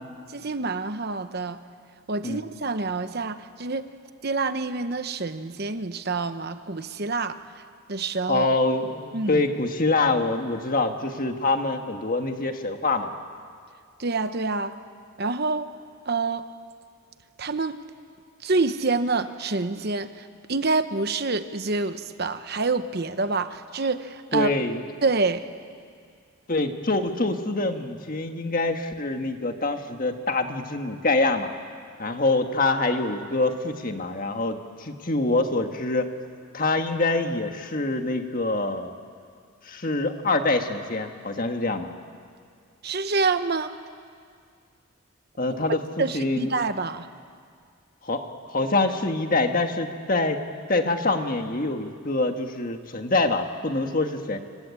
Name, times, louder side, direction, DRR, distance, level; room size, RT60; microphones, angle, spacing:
voice 1, 0.3-1.6 2.1-3.9 4.2-7.4 7.9-8.5 9.1-9.4 14.0-14.8 15.2-15.7 16.1-16.5 17.4-17.8 18.4-24.6 25.0-25.5 42.8-43.7 46.0-47.1, right 3 dB, 50° right, 10 dB, 1.0 m, -27 dB
voice 2, 8.3-13.1 24.3-24.8 26.5-31.5 32.0-36.1 36.5-38.9 39.6-41.9 45.4-46.5 48.0-50.4 50.7-54.4, left 2 dB, 40° left, 5 dB, 1.7 m, -25 dB
27.0 x 24.5 x 8.5 m, 2.2 s
head